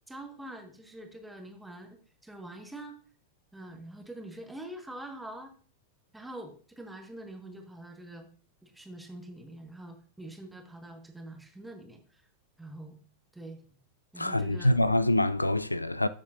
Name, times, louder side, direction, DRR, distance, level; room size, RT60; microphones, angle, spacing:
voice 1, 0.1-3.0 3.5-5.5 6.1-8.3 8.6-12.2 12.6-13.0 13.3-13.6 14.1-14.8, right 1 dB, 5° right, 1.5 m, -45 dB
voice 2, 14.2-16.1, left 1 dB, 85° left, 0.3 m, -25 dB
13.0 x 7.2 x 2.6 m
figure-of-eight pair, 90°, 0 cm